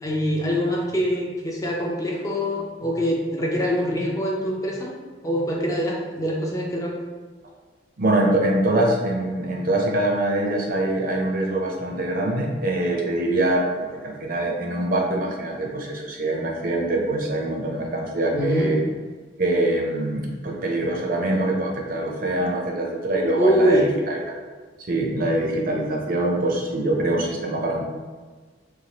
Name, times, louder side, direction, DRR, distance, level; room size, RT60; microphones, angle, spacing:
voice 1, 0.0-4.9 5.2-6.9 18.3-18.7 23.4-23.9, equal, 20° left, -2 dB, 0.4 m, -24 dB
voice 2, 8.0-18.8 19.4-24.2 24.9-27.8, right 1 dB, 50° right, 0 dB, 0.5 m, -24 dB
3.1 x 2.2 x 2.8 m, 1.4 s
head